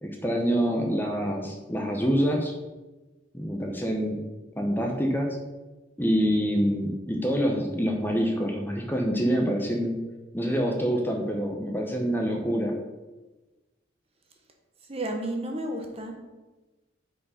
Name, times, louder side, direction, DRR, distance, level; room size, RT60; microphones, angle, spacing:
voice 1, 0.0-2.5 3.3-4.2 4.6-5.4 6.0-10.0 10.3-12.7, equal, 10° left, 1 dB, 0.9 m, -26 dB
voice 2, 14.9-16.1, right 1 dB, 30° right, 3 dB, 1.1 m, -32 dB
9.3 x 5.0 x 5.0 m, 1.1 s
head